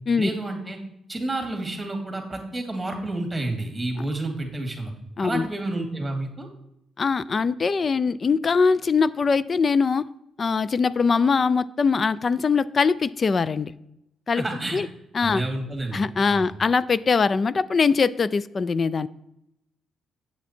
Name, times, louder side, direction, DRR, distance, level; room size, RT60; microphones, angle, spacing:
voice 1, 0.2-0.8 1.1-4.9 5.2-6.5 14.4-14.8 15.2-16.5, right 2 dB, 15° right, 3 dB, 2.2 m, -30 dB
voice 2, 7.0-10.0 10.4-13.7 14.3-14.4 14.7-14.9 15.1-15.4 15.9-19.1, left 5 dB, 40° left, 17 dB, 0.3 m, -22 dB
8.1 x 7.2 x 4.3 m, 0.81 s
cardioid pair, 90°, 0 cm